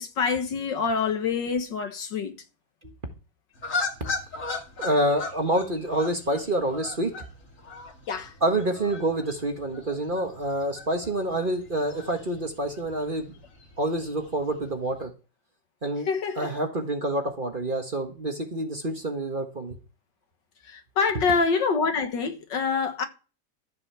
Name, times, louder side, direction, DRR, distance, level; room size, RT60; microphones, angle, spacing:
voice 1, 0.0-2.3 8.1-8.3 16.1-16.5 20.7-23.1, left 5 dB, 70° left, 2.1 m, -26 dB
sound 1, 3.6-15.0, left 4 dB, 45° left, 2.7 m, -38 dB
voice 2, 4.8-7.1 8.4-13.3 13.8-15.1 15.8-16.1 16.3-19.7 21.1-21.2, right 1 dB, 30° right, 1.5 m, -27 dB
14.0 x 5.5 x 6.7 m
omnidirectional pair, 2.0 m